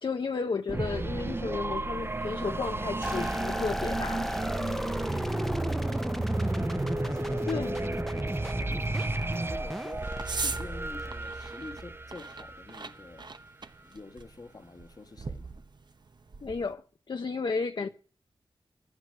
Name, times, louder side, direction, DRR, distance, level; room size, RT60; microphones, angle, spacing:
voice 1, 0.0-4.3 7.5-7.7 16.4-16.8 17.1-17.9, left 4 dB, 60° left, 0.7 m, -32 dB
sound 1, 0.7-13.4, right 2 dB, 25° right, 0.6 m, -33 dB
sound 2, 3.0-11.5, equal, 5° left, 0.8 m, -35 dB
sound 3, 5.8-16.7, right 4 dB, 50° right, 0.9 m, -43 dB
voice 2, 6.5-8.3 8.7-13.3 13.8-15.5 17.8-17.9, left 3 dB, 45° left, 1.3 m, -47 dB
11.0 x 11.0 x 7.5 m
wide cardioid pair, 90°, 9 cm